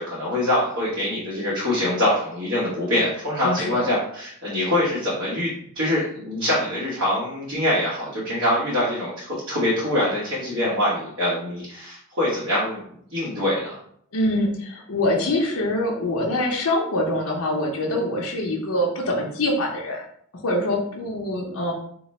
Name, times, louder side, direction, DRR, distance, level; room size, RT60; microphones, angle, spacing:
voice 1, 0.0-12.8 13.1-13.8, left 1 dB, 65° right, -9 dB, 1.1 m, -24 dB
voice 2, 3.4-3.7 14.1-20.0 20.3-21.7, left 1 dB, 80° left, -1 dB, 0.7 m, -24 dB
3.0 x 2.1 x 4.1 m, 0.65 s
head